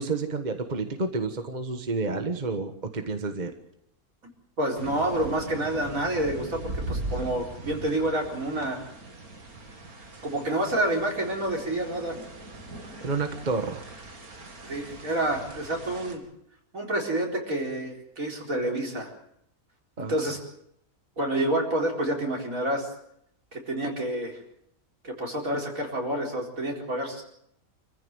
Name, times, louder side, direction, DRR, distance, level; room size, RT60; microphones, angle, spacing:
voice 1, 0.0-3.5 13.0-13.9 20.0-20.3, right 3 dB, 30° right, 6 dB, 1.5 m, -30 dB
voice 2, 4.6-8.8 10.2-12.2 14.6-16.2 16.7-19.1 20.0-20.4 21.2-22.9 23.5-24.4 25.0-27.2, right 1 dB, 65° right, 0 dB, 4.8 m, -28 dB
sound 1, 4.7-16.1, right 2 dB, 80° right, 3.3 m, -40 dB
26.5 x 15.0 x 7.9 m, 0.74 s
omnidirectional pair, 1.5 m